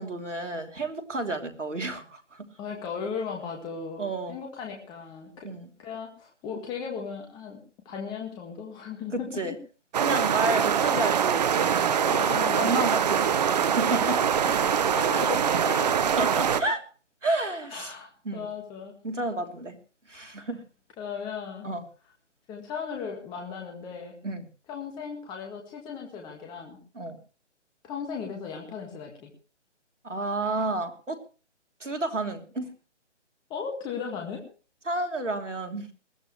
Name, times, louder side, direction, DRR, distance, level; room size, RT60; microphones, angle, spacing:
voice 1, 0.0-2.5 4.0-4.4 5.4-5.7 9.1-9.5 10.0-12.0 12.6-14.2 16.2-16.8 17.2-17.9 18.2-18.5 19.0-19.8 20.1-20.6 21.6-21.8 24.2-24.4 26.9-27.2 30.0-31.2 31.8-32.7 34.9-35.9, right 2 dB, 90° right, 4 dB, 3.1 m, -31 dB
voice 2, 2.6-5.5 5.8-9.3 12.1-12.9 14.5-16.0 17.7-18.9 20.1-20.5 21.0-21.7 22.5-24.1 24.7-26.8 27.8-29.3 30.5-30.6 33.5-34.4, left 6 dB, 10° left, 1 dB, 1.8 m, -37 dB
sound 1, 9.9-16.6, right 8 dB, 35° right, 1.1 m, -24 dB
20.5 x 14.0 x 3.2 m, 0.37 s
figure-of-eight pair, 150°, 36 cm